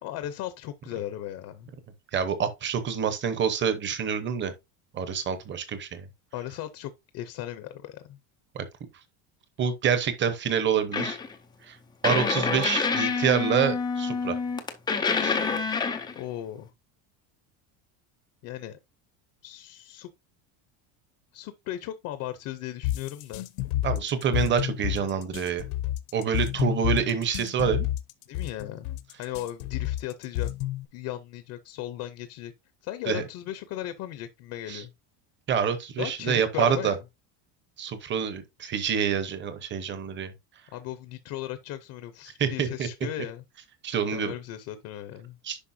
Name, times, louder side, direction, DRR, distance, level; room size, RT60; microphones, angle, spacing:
voice 1, 0.0-1.7 6.3-8.2 15.6-15.7 16.2-16.7 18.4-18.8 19.4-20.1 21.3-23.5 28.3-28.9 29.2-30.5 30.9-32.5 32.8-34.9 36.0-37.0 40.7-43.4 44.1-45.4, left 13 dB, 40° left, 0.7 m, -37 dB
voice 2, 2.1-4.5 4.9-6.0 8.5-8.6 9.6-11.2 11.6-11.8 12.0-14.4 15.2-15.4 23.8-25.6 26.1-27.9 33.1-33.2 34.7-34.8 35.5-36.9 37.8-40.3 42.4-42.9 43.8-44.3 45.4-45.6, right 7 dB, 25° right, 1.0 m, -27 dB
sound 1, 10.9-11.3 12.0-16.2, left 5 dB, 10° left, 0.4 m, -27 dB
sound 2, 22.8-30.8, left 14 dB, 65° left, 1.0 m, -29 dB
10.0 x 5.5 x 2.7 m
cardioid pair, 175°, 48 cm